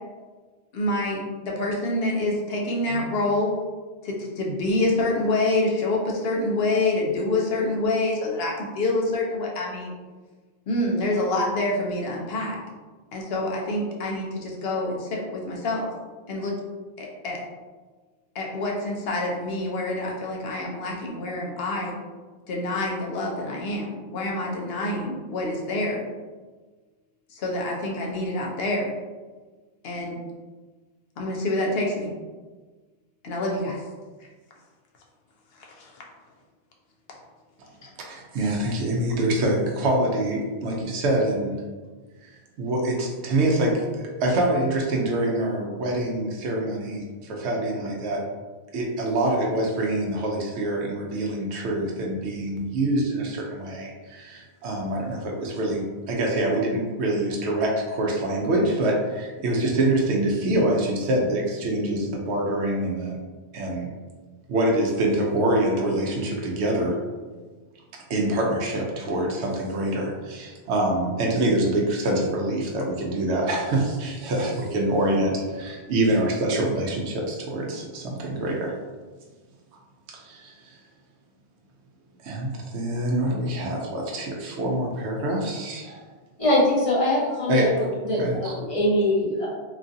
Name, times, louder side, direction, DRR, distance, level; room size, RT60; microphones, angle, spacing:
voice 1, 0.7-3.5 4.0-9.9 10.7-12.6 13.1-15.9 16.3-16.5 17.0-17.4 18.3-21.9 22.5-26.0 27.3-28.9 29.8-30.1 31.2-32.1 33.2-33.8 35.6-35.9 37.8-37.9, left 2 dB, 70° left, -1 dB, 0.8 m, -26 dB
voice 2, 38.1-41.5 42.6-48.2 48.7-63.2 63.5-63.9 64.5-67.0 67.9-78.7 80.1-80.8 82.2-86.0 87.5-87.9 88.2-88.5, right 1 dB, 85° right, -1 dB, 0.9 m, -25 dB
voice 3, 86.4-87.7 88.0-88.2 88.5-89.5, left 1 dB, 35° left, -8 dB, 0.8 m, -22 dB
2.9 x 2.4 x 2.6 m, 1.3 s
omnidirectional pair, 1.1 m